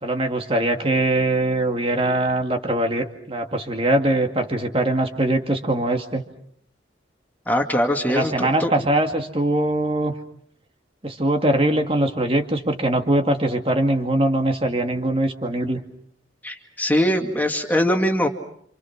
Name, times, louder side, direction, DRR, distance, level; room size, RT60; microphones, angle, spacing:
voice 1, 0.0-6.2 8.1-10.1 11.0-15.8, right 1 dB, 30° right, 4 dB, 2.3 m, -22 dB
voice 2, 7.5-8.7 16.4-18.3, equal, 10° left, 3 dB, 2.2 m, -22 dB
29.0 x 27.0 x 6.1 m, 0.66 s
head